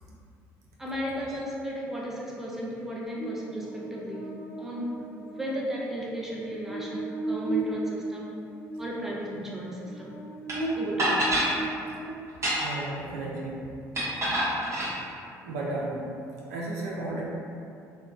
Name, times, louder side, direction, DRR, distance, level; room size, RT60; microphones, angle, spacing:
voice 1, 0.8-8.3 8.8-10.1 10.7-11.3, equal, 5° right, -4 dB, 0.6 m, -35 dB
Buzz, 3.2-12.6, right 2 dB, 70° left, 0.9 m, -36 dB
sound 1, 10.5-10.6 11.0-11.5 12.3-12.9 13.9-14.9, right 1 dB, 35° right, 0.9 m, -26 dB
voice 2, 12.6-13.6 15.0-15.1 15.4-16.1 16.5-17.2, right 2 dB, 80° right, -4 dB, 0.4 m, -33 dB
3.0 x 2.1 x 2.4 m, 2.5 s
hypercardioid pair, 60°, 8 cm